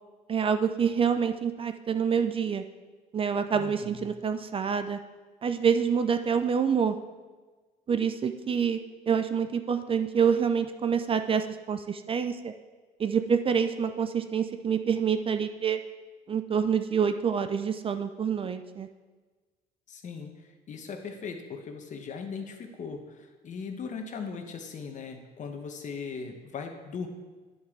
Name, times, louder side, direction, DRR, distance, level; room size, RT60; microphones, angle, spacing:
voice 1, 0.3-2.6 3.1-5.0 5.4-7.0 7.9-8.8 9.1-12.5 13.0-15.8 16.3-18.9, right 7 dB, 35° right, 9 dB, 0.5 m, -27 dB
voice 2, 3.5-4.1 19.9-20.3 20.7-27.1, left 5 dB, 45° left, 5 dB, 1.2 m, -39 dB
9.8 x 7.8 x 3.8 m, 1.3 s
cardioid pair, 110°, 17 cm